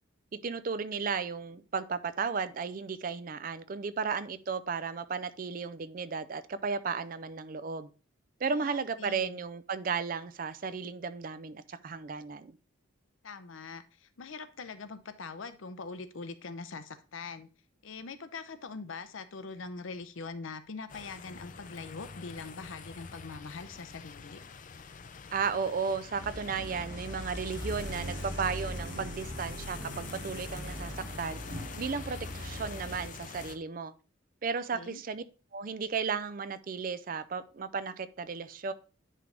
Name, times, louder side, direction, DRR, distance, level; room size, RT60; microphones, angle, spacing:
voice 1, 0.4-7.9 8.4-12.6 25.3-31.4 31.8-33.9 34.4-35.2 35.5-38.7, right 5 dB, 45° right, 0.4 m, -34 dB
voice 2, 8.5-9.4 13.2-17.5 17.8-24.4 34.7-35.0, left 4 dB, 80° left, 0.7 m, -43 dB
sound 1, 20.9-33.6, left 5 dB, 40° left, 0.5 m, -46 dB
sound 2, 26.1-33.0, equal, 65° right, 2.8 m, -40 dB
10.0 x 3.4 x 3.7 m
head